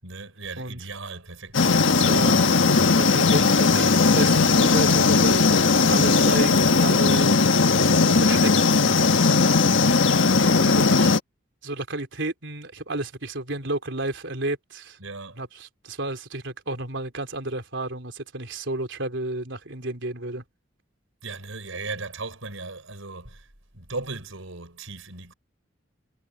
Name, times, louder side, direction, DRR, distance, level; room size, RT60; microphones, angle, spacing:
voice 1, 0.0-2.6 7.0-7.3 15.0-15.4 21.2-23.5 23.7-25.3, right 3 dB, 90° right, 6.0 m, -37 dB
sound 1, 1.5-11.2, left 4 dB, 70° left, 1.4 m, -18 dB
voice 2, 1.9-2.4 2.7-7.4 8.1-9.4 10.5-11.2 11.6-15.0 15.4-20.4, right 2 dB, 65° right, 3.9 m, -32 dB
head